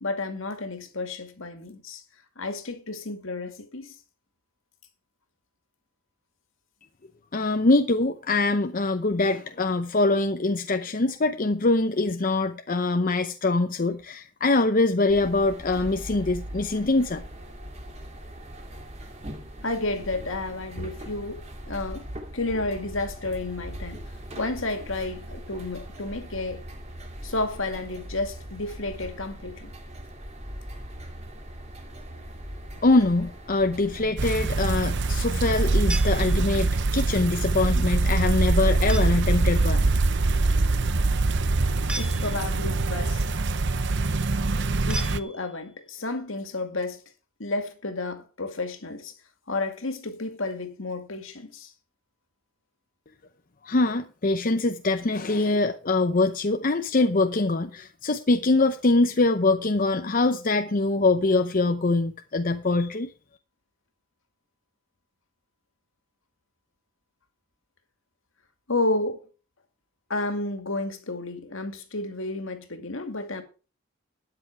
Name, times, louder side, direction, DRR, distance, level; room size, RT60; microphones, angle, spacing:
voice 1, 0.0-2.0 2.4-4.0 19.6-22.1 22.3-24.0 24.3-26.6 27.2-29.7 42.0-43.2 44.9-47.0 47.4-49.1 49.5-51.7 68.7-69.2 70.1-73.4, left 2 dB, 65° left, 2.3 m, -31 dB
voice 2, 7.3-17.2 32.8-39.9 53.6-63.1, left 2 dB, 40° left, 0.7 m, -23 dB
sound 1, 15.1-34.1, equal, 30° right, 2.7 m, -40 dB
sound 2, 34.2-45.2, right 3 dB, 55° right, 0.8 m, -23 dB
sound 3, 35.9-36.8 38.9-39.4 41.9-42.7 44.9-45.8, right 1 dB, 5° right, 1.3 m, -37 dB
13.0 x 9.7 x 4.6 m
head